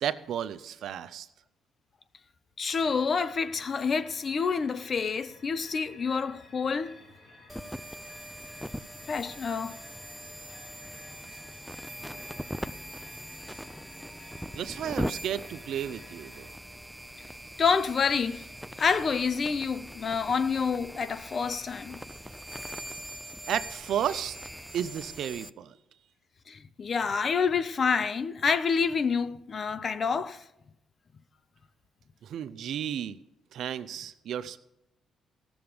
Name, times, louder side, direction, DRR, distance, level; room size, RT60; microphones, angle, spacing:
voice 1, 0.0-1.3 14.5-16.5 23.5-24.4 24.7-25.7 32.2-33.2 33.5-34.6, right 10 dB, 70° right, 0.6 m, -33 dB
voice 2, 2.6-7.0 9.1-9.8 17.6-18.5 18.8-22.0 26.5-30.4, left 5 dB, 45° left, 0.6 m, -28 dB
sound 1, 2.7-16.5, left 2 dB, 65° left, 2.9 m, -54 dB
sound 2, 7.5-25.5, equal, ahead, 0.4 m, -41 dB
16.0 x 7.1 x 5.0 m
cardioid pair, 90°, 0 cm